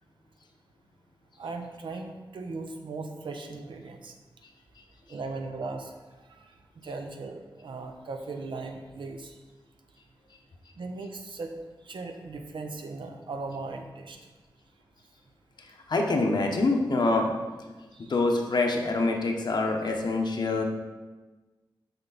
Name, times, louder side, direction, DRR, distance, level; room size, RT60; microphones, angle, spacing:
voice 1, 1.4-4.2 5.1-6.5 6.8-9.4 10.8-11.6 11.8-14.2 17.9-18.1, right 3 dB, 75° right, 4 dB, 0.8 m, -38 dB
voice 2, 15.9-17.3 18.0-20.6, left 3 dB, 60° left, 2 dB, 1.0 m, -25 dB
6.8 x 5.9 x 4.1 m, 1.2 s
wide cardioid pair, 120°, 8 cm